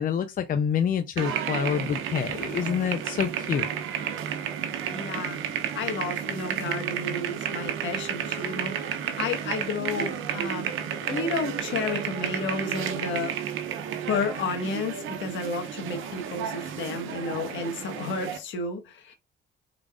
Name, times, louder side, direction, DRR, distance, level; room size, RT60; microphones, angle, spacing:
voice 1, 0.0-3.7, left 8 dB, 45° left, 0.5 m, -27 dB
sound 1, 1.2-18.4, right 8 dB, 90° right, 0.8 m, -32 dB
Wind instrument woodwind instrument, 4.3-10.2 10.9-16.7, right 11 dB, 65° right, 1.1 m, -43 dB
voice 2, 4.9-10.7 11.0-13.4 14.1-19.2, left 4 dB, 70° left, 1.4 m, -32 dB
4.9 x 3.8 x 2.3 m
cardioid pair, 90°, 20 cm